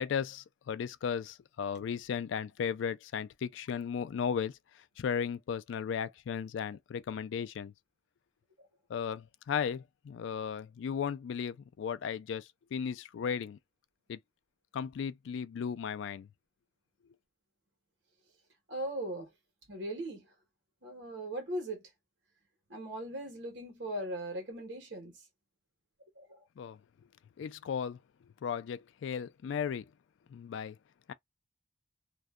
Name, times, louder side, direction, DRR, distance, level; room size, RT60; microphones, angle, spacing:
voice 1, 0.0-4.6 5.0-7.7 8.9-13.6 14.1-14.2 14.7-16.3 26.6-26.8 27.4-28.0 28.4-29.9 30.3-30.8 31.1-31.2, left 7 dB, 80° left, 0.3 m, -35 dB
voice 2, 18.7-19.3 19.7-20.2 20.8-21.8 22.7-25.2 26.2-26.4, right 1 dB, 75° right, 1.1 m, -39 dB
2.6 x 2.1 x 2.3 m
head